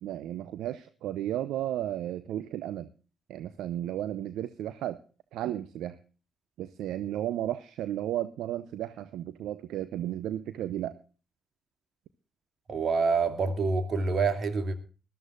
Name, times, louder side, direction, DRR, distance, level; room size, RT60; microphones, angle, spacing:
voice 1, 0.0-2.9 3.3-5.0 5.3-6.0 6.6-11.0, right 12 dB, 75° right, 0.6 m, -34 dB
voice 2, 12.7-14.7, right 4 dB, 50° right, 2.6 m, -27 dB
20.5 x 13.5 x 2.5 m
hypercardioid pair, 45°, 0 cm